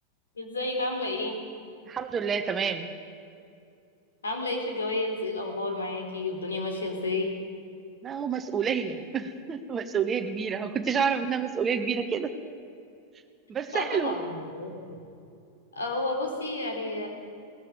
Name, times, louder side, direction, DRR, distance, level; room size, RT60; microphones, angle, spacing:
voice 1, 0.4-1.3 4.2-7.3 13.7-15.0 15.8-17.1, left 2 dB, 70° left, 4 dB, 3.9 m, -31 dB
voice 2, 1.9-2.9 8.0-12.3 13.5-14.2, right 6 dB, 25° right, 8 dB, 1.4 m, -29 dB
21.5 x 18.5 x 8.0 m, 2.5 s
figure-of-eight pair, 90°, 0 cm